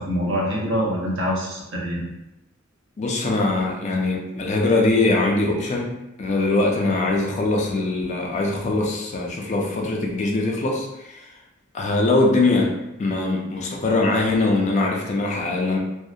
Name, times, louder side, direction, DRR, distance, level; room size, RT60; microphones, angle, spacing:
voice 1, 0.0-2.1, equal, 65° right, -4 dB, 0.7 m, -25 dB
voice 2, 3.0-5.9 6.2-11.3 11.7-15.8, left 2 dB, 35° left, 0 dB, 0.4 m, -22 dB
2.6 x 2.0 x 2.3 m, 0.91 s
head